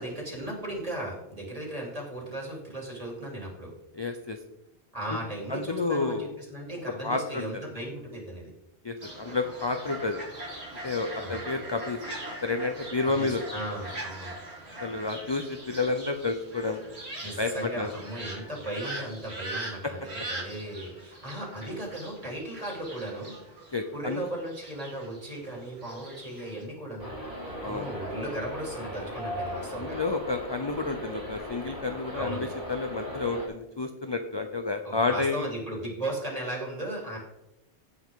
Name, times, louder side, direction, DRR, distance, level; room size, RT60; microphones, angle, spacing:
voice 1, 0.0-3.7 4.9-8.5 11.2-11.4 13.2-14.4 17.2-20.0 20.3-23.3 23.9-30.0 32.1-32.4 34.8-37.2, right 1 dB, 35° right, -2 dB, 3.7 m, -36 dB
voice 2, 3.9-4.4 5.1-5.2 5.5-6.3 7.0-7.7 8.8-10.2 10.8-12.2 12.4-13.4 14.8-16.8 17.4-17.9 23.7-24.3 27.6-27.9 29.8-35.5, left 3 dB, 30° left, 6 dB, 0.6 m, -30 dB
Fowl, 9.0-26.6, right 2 dB, 70° right, 3.4 m, -41 dB
sound 1, 27.0-33.5, equal, 50° right, 4.0 m, -38 dB
17.0 x 6.0 x 3.8 m, 0.89 s
omnidirectional pair, 1.1 m